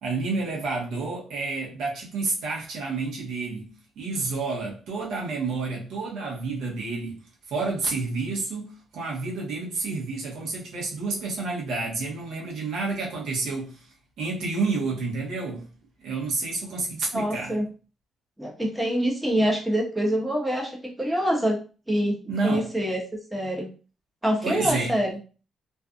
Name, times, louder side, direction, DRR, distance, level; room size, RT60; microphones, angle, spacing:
voice 1, 0.0-7.2 7.5-13.9 14.2-15.7 16.0-17.5 22.3-22.7 24.4-25.0, right 3 dB, 80° right, 1.0 m, -29 dB
voice 2, 17.1-17.7 18.4-21.6 21.9-22.2 22.4-23.0 23.3-23.7 24.2-25.1, equal, 10° right, 0.9 m, -25 dB
2.5 x 2.3 x 2.5 m
cardioid pair, 90°, 0 cm